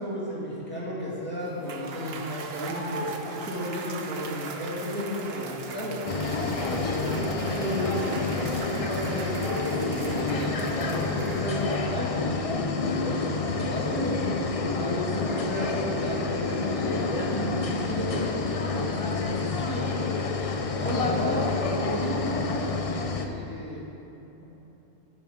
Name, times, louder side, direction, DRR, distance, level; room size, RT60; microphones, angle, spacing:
voice 1, 0.0-6.0 6.7-9.4 9.9-14.1 14.7-19.1 19.4-19.9 20.6-22.5 23.2-23.8 24.4-24.5, equal, 10° left, -8 dB, 2.4 m, -33 dB
Cheering / Applause / Crowd, 1.5-11.9, right 4 dB, 55° right, 0.9 m, -39 dB
sound 1, 6.1-23.3, left 3 dB, 40° left, 0.5 m, -28 dB
10.5 x 8.5 x 5.1 m, 3.0 s
omnidirectional pair, 1.3 m